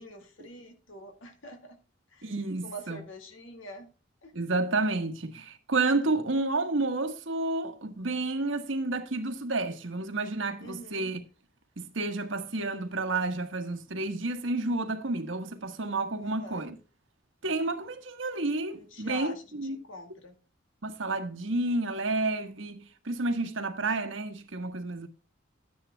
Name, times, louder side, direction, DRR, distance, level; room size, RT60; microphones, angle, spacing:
voice 1, 0.0-1.8 2.1-2.3 2.6-3.9 4.2-4.3 10.6-11.1 16.2-16.6 18.7-20.3, left 1 dB, 80° left, 2.0 m, -45 dB
voice 2, 2.2-3.0 4.3-11.2 11.8-16.8 17.4-19.8 20.8-25.1, right 2 dB, 75° right, 1.4 m, -30 dB
12.5 x 9.7 x 2.2 m
head